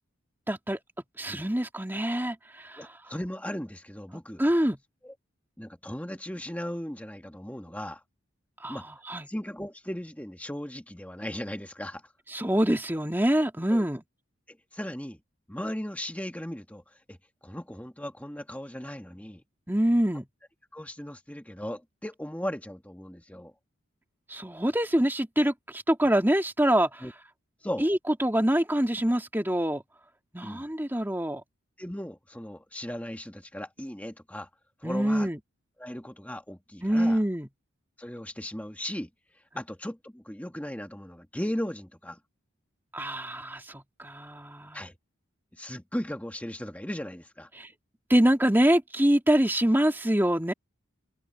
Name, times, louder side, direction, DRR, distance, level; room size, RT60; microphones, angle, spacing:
voice 1, 0.5-0.8 1.2-2.9 4.4-4.8 8.6-8.8 9.1-9.3 12.3-14.0 19.7-20.2 24.3-27.0 27.8-29.8 30.3-31.4 34.8-35.4 36.8-37.5 42.9-44.8 47.5-47.7 48.1-50.5, right 1 dB, 10° right, 2.4 m, -25 dB
voice 2, 2.8-4.4 5.0-5.1 5.6-8.0 8.7-8.9 9.3-12.0 13.7-13.9 14.5-15.2 15.5-17.2 17.4-19.4 20.7-23.5 27.0-27.1 27.6-27.9 30.4-30.7 31.8-34.5 34.8-35.3 35.8-37.2 38.0-39.1 39.6-42.2 44.7-44.9 45.5-47.5, left 1 dB, 5° left, 1.6 m, -37 dB
open air
head